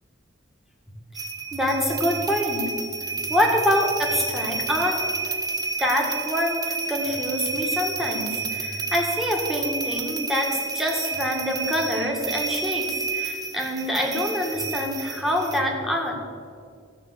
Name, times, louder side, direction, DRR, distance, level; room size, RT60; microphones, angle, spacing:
sound 1, 1.1-15.6, right 4 dB, 20° right, 0.7 m, -30 dB
voice 1, 1.5-2.7 3.3-5.0 5.8-16.2, left 1 dB, ahead, 0 dB, 1.7 m, -25 dB
14.5 x 5.6 x 7.8 m, 2.2 s
head